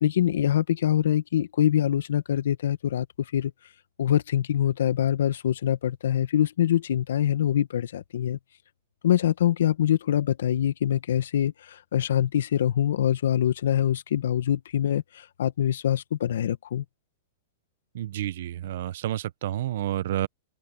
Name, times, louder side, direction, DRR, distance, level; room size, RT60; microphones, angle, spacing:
voice 1, 0.0-3.1 3.3-3.5 4.0-8.4 9.0-16.8, left 10 dB, 75° left, 1.4 m, -24 dB
voice 2, 17.9-20.3, right 12 dB, 65° right, 0.9 m, -30 dB
open air
hypercardioid pair, 130°, 0 cm